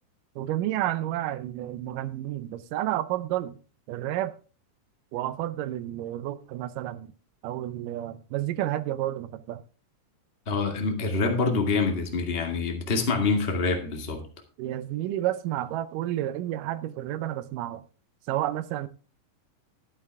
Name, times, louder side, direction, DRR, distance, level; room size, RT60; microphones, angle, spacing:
voice 1, 0.4-3.5 3.9-4.3 5.1-7.1 7.4-9.6 14.6-17.8 18.3-18.9, right 13 dB, 80° right, 2.2 m, -30 dB
voice 2, 10.4-14.2, left 4 dB, 25° left, 1.6 m, -26 dB
12.0 x 11.5 x 3.5 m
omnidirectional pair, 3.8 m